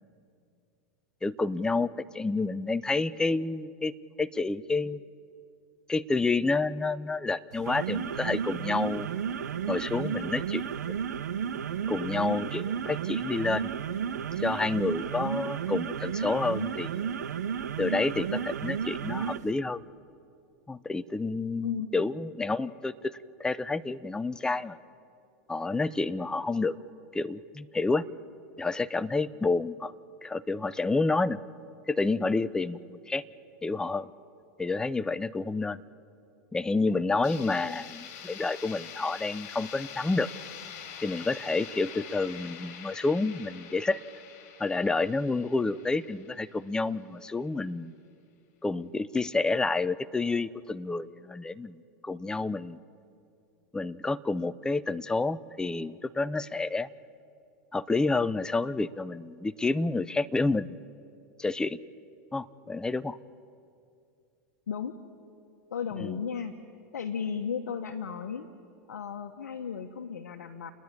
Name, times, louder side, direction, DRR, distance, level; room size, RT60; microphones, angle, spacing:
voice 1, 1.2-5.0 5.9-9.1 9.7-11.0 11.9-13.7 14.4-17.1 17.8-19.8 20.7-24.8 25.5-26.8 27.1-28.0 28.6-29.9 30.2-31.4 31.9-33.2 33.6-34.1 34.6-35.8 36.5-40.3 41.0-44.0 44.6-47.9 48.6-51.8 52.0-52.8 53.7-56.9 57.7-60.8 61.4-61.8 62.3-63.2 66.0-66.1, left 3 dB, 10° left, 16 dB, 0.5 m, -29 dB
sound 1, 7.5-19.5, right 7 dB, 90° right, 0.9 m, -33 dB
sound 2, 37.2-47.0, left 8 dB, 60° left, 3.0 m, -45 dB
voice 2, 37.3-37.8 64.7-65.0 65.7-66.6 66.9-68.5 68.9-70.7, left 7 dB, 90° left, 4 dB, 1.1 m, -35 dB
30.0 x 10.0 x 9.5 m, 2.4 s
hypercardioid pair, 110°, 9 cm